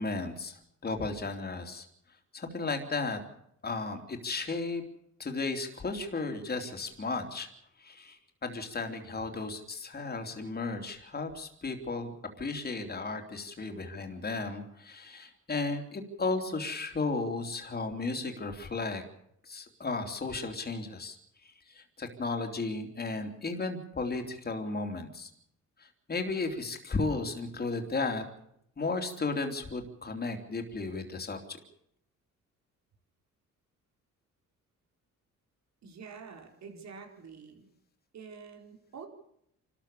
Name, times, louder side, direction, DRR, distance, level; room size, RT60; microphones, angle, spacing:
voice 1, 0.0-1.8 2.3-3.2 3.6-4.8 5.2-7.5 7.8-19.0 19.4-21.2 21.4-25.3 25.8-28.2 28.8-31.6, left 3 dB, 30° left, 4 dB, 3.4 m, -34 dB
voice 2, 35.8-37.7 38.1-39.1, right 5 dB, 65° right, 4 dB, 4.4 m, -47 dB
28.0 x 13.5 x 7.0 m, 0.74 s
cardioid pair, 90°, 30 cm